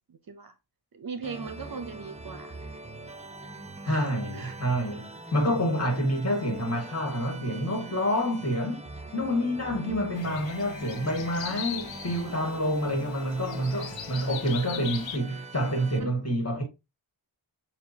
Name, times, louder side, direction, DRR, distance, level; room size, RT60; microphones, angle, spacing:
voice 1, 0.1-0.6 0.9-2.6 3.8-4.1 4.3-4.6 14.1-14.3 16.0-16.1, right 5 dB, 50° right, 0.6 m, -39 dB
sound 1, 1.2-16.0, right 2 dB, 15° right, 0.7 m, -43 dB
voice 2, 3.9-8.8 9.1-16.6, equal, 30° left, 1.9 m, -28 dB
sound 2, 10.2-15.2, left 9 dB, 70° left, 0.7 m, -40 dB
6.6 x 2.4 x 2.8 m
cardioid pair, 55°, 47 cm